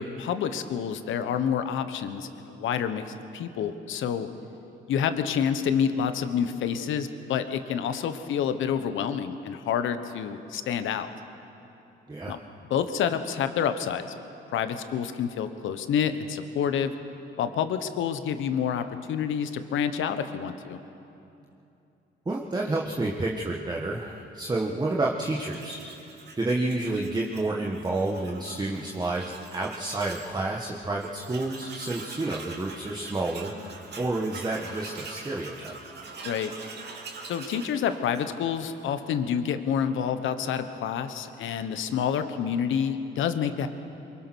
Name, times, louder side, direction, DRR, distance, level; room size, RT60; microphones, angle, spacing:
voice 1, 0.0-4.3 4.9-11.1 12.3-12.4 12.7-14.0 14.5-16.9 17.4-20.8 33.6-33.7 36.2-36.5 37.2-43.7, left 8 dB, 80° left, 9 dB, 1.2 m, -28 dB
voice 2, 22.2-26.1 26.4-35.8, right 2 dB, 20° right, -2 dB, 1.6 m, -30 dB
Tools, 25.2-30.3 30.7-30.8 31.0-38.6, right 4 dB, 55° right, 2.6 m, -44 dB
23.5 x 22.0 x 6.3 m, 2.8 s
cardioid pair, 90°, 20 cm